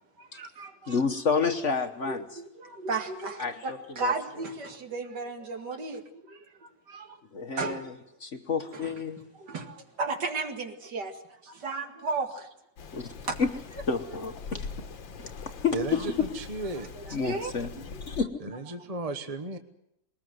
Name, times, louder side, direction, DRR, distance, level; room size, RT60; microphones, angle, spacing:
voice 1, 0.2-0.9 2.1-7.2 7.5-7.8 8.8-8.9 9.4-12.5 13.2-13.4 17.2-17.9 18.8-18.9, right 3 dB, 65° right, 6 dB, 2.7 m, -34 dB
voice 2, 0.9-2.4 3.4-4.1 7.3-7.9 8.2-9.2 12.9-13.1 13.4-13.5 13.9-14.9 15.2-16.3 17.1-17.7 18.1-18.3, left 5 dB, 45° left, 8 dB, 1.3 m, -30 dB
Rain, 12.8-18.3, left 5 dB, 85° left, 2.1 m, -42 dB
voice 3, 15.7-16.9 18.4-19.6, right 2 dB, 25° right, 9 dB, 1.0 m, -34 dB
21.5 x 19.5 x 7.9 m, 0.77 s
omnidirectional pair, 2.0 m